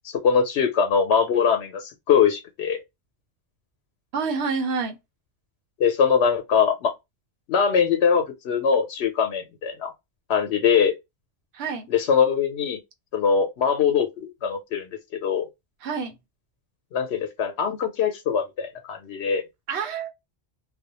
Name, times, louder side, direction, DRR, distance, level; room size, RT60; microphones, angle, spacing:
voice 1, 0.2-2.8 5.8-6.9 7.5-9.9 10.3-10.9 11.9-12.8 13.1-14.9 15.2-15.5 16.9-19.4, left 6 dB, 80° left, 0.9 m, -22 dB
voice 2, 4.1-5.0 11.5-11.9 15.8-16.2 19.7-20.1, right 5 dB, 80° right, 0.9 m, -27 dB
2.4 x 2.1 x 2.8 m
omnidirectional pair, 1.1 m